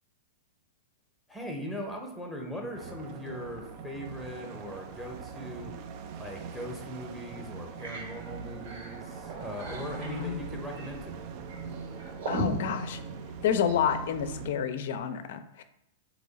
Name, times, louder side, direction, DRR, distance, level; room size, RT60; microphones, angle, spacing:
voice 1, 1.3-5.7 6.2-11.2, left 1 dB, 5° left, 1 dB, 0.8 m, -40 dB
sound 1, 2.7-14.5, right 6 dB, 45° right, 0.4 m, -42 dB
sound 2, 6.5-6.7 7.1-7.2 7.6-13.9, right 1 dB, 70° right, 1.5 m, -39 dB
voice 2, 12.3-13.0 13.4-15.6, left 8 dB, 55° left, 10 dB, 0.4 m, -29 dB
3.8 x 2.9 x 4.0 m, 0.83 s
figure-of-eight pair, 100°, 0 cm